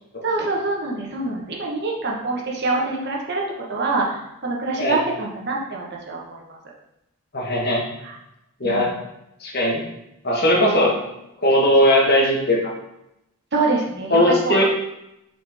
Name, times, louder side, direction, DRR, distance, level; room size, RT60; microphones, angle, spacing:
voice 1, 0.2-3.4 3.7-6.6 8.0-8.2 8.6-8.9 10.6-10.8 13.5-14.2 14.4-14.6, right 3 dB, 50° right, -2 dB, 1.1 m, -25 dB
voice 2, 7.3-7.8 8.6-8.9 9.4-9.8 10.2-10.9 11.4-12.6 14.1-14.6, left 1 dB, 45° left, -2 dB, 1.4 m, -18 dB
6.4 x 4.3 x 3.5 m, 0.86 s
head